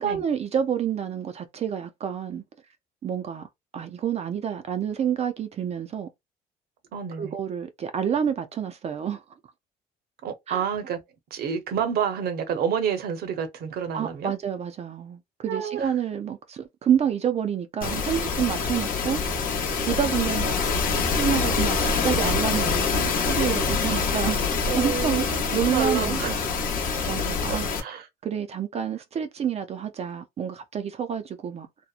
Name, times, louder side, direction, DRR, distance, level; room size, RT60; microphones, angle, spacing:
voice 1, 0.0-2.4 3.0-3.5 3.7-6.1 7.2-9.2 10.5-10.6 13.9-19.2 19.9-20.6 20.9-24.4 24.7-26.4 27.1-27.7 28.2-31.7, right 8 dB, 40° right, 0.4 m, -28 dB
voice 2, 6.9-7.4 10.2-11.0 11.3-14.3 15.5-15.9 20.1-20.3 23.9-24.1 24.7-25.2 25.7-26.5 27.5-28.1, right 7 dB, 65° right, 0.8 m, -29 dB
sound 1, 17.8-27.8, left 5 dB, 55° left, 0.8 m, -25 dB
2.8 x 2.1 x 2.4 m
cardioid pair, 110°, 17 cm